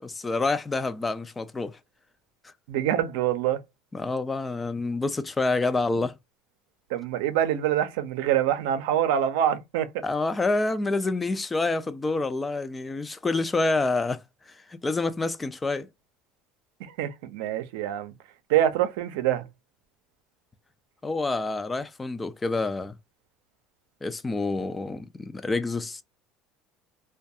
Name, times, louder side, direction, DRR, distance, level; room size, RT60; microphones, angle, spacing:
voice 1, 0.0-1.8 3.9-6.1 10.0-14.2 14.7-15.9 21.0-22.9 24.0-26.0, left 3 dB, 15° left, 0.3 m, -27 dB
voice 2, 2.7-3.6 6.9-9.9 16.8-18.1 18.5-19.5, right 11 dB, 85° right, 0.5 m, -25 dB
2.3 x 2.2 x 2.6 m
supercardioid pair, 120°, 0 cm